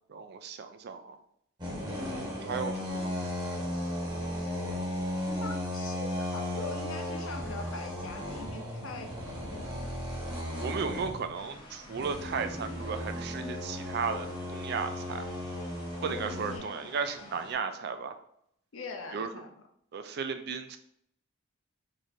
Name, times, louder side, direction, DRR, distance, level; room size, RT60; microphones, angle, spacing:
voice 1, 0.1-1.2 2.4-3.1 10.6-15.3 16.0-18.2 19.1-19.3 19.9-20.8, right 5 dB, 50° right, 8 dB, 0.3 m, -35 dB
sound 1, 1.6-11.4 11.9-16.6, left 1 dB, 20° right, 1.0 m, -35 dB
voice 2, 5.4-9.1 9.5-9.9 16.1-16.7 18.7-19.5, left 3 dB, 65° left, 3 dB, 0.6 m, -42 dB
sound 2, 11.3-17.5, left 1 dB, 20° left, 0.6 m, -51 dB
3.2 x 2.6 x 4.1 m, 0.71 s
head